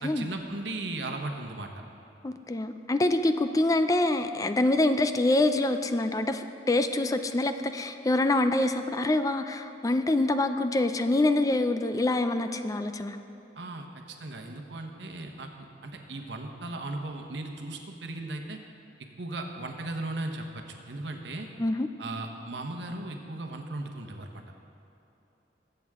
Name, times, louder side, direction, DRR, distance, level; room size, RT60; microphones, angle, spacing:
voice 1, 0.0-1.7 13.6-18.6 19.2-21.5 22.0-24.4, right 2 dB, 70° right, 3 dB, 1.1 m, -37 dB
voice 2, 2.2-13.2 21.6-21.9, left 2 dB, 20° left, 9 dB, 0.4 m, -25 dB
21.5 x 7.9 x 3.7 m, 3.0 s
head